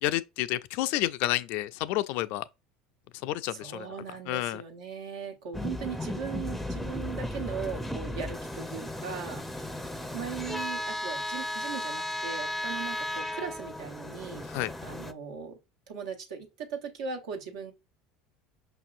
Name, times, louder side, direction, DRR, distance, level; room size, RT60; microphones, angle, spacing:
voice 1, 0.0-2.4 3.2-3.9 4.3-4.6 14.5-14.7, left 16 dB, 65° left, 0.3 m, -30 dB
voice 2, 3.5-9.4 10.1-14.5 14.8-15.6 15.9-17.7, right 6 dB, 80° right, 1.2 m, -38 dB
sound 1, 5.5-15.1, left 1 dB, 5° left, 0.5 m, -35 dB
5.3 x 2.7 x 2.5 m
hypercardioid pair, 90°, 3 cm